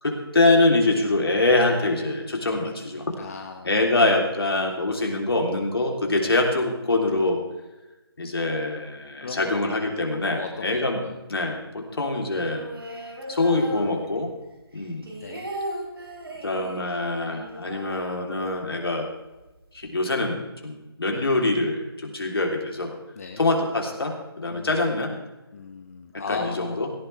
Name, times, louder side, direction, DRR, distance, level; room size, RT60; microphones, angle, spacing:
voice 1, 0.0-3.1 3.6-7.4 8.2-11.0 11.3-12.6 13.3-14.3 14.7-15.1 16.4-19.1 19.7-20.4 20.6-22.9 23.4-25.1 26.1-26.9, left 2 dB, 65° left, 2 dB, 3.3 m, -24 dB
voice 2, 3.2-3.8 6.2-6.4 9.2-9.8 10.3-11.2 15.2-15.5 23.2-23.4 24.5-24.8 25.5-26.9, left 5 dB, 35° left, 5 dB, 0.9 m, -36 dB
sound 1, 12.3-14.4 14.7-18.7 19.0-19.1 19.3-19.9, right 1 dB, 65° right, 4.4 m, -37 dB
17.0 x 13.5 x 3.4 m, 1.1 s
figure-of-eight pair, 160°, 13 cm